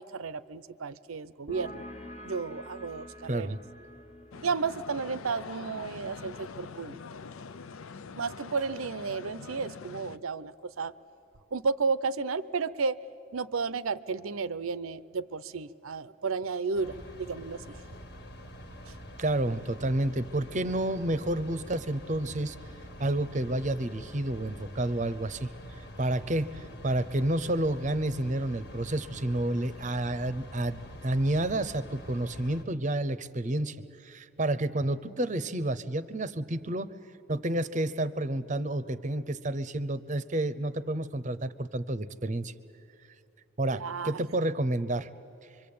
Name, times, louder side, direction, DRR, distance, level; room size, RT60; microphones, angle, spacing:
voice 1, 0.0-1.8 2.2-3.5 4.4-7.0 8.2-10.9 11.5-13.0 13.3-17.8 18.9-19.0 43.7-44.2, right 4 dB, 85° right, 16 dB, 0.7 m, -33 dB
sound 1, 1.5-8.7, left 1 dB, 35° left, 1.4 m, -49 dB
voice 2, 3.3-3.6 19.2-22.6 23.0-33.8 34.0-36.9 37.3-42.5 43.6-45.1, right 1 dB, 35° right, 14 dB, 0.7 m, -30 dB
sound 2, 4.3-10.2, left 5 dB, 85° left, 0.6 m, -44 dB
sound 3, 16.7-32.6, equal, 50° left, 1.6 m, -46 dB
25.5 x 24.0 x 8.6 m, 2.6 s
head